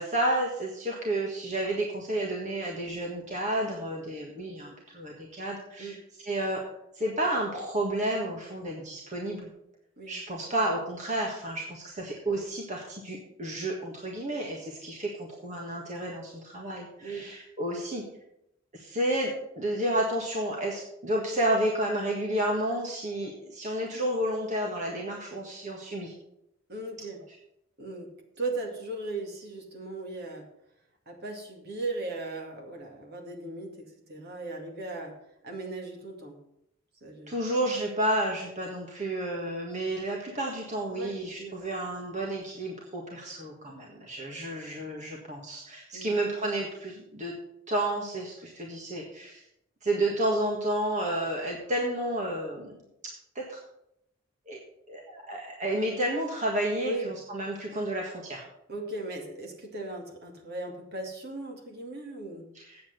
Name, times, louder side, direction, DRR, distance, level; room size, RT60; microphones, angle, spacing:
voice 1, 0.0-6.0 6.3-6.6 6.9-9.5 10.1-18.0 18.7-26.1 37.3-47.3 47.7-49.4 49.8-52.7 53.3-53.6 54.5-54.6 54.9-58.4 62.5-62.8, right 1 dB, 35° right, -1 dB, 1.6 m, -31 dB
voice 2, 26.7-27.2 27.8-30.5 31.1-35.2 35.4-36.4 37.0-37.4 41.0-41.7 45.9-46.1 56.8-57.1 58.7-62.5, right 2 dB, 50° right, 1 dB, 2.3 m, -37 dB
8.6 x 7.8 x 6.7 m, 0.79 s
head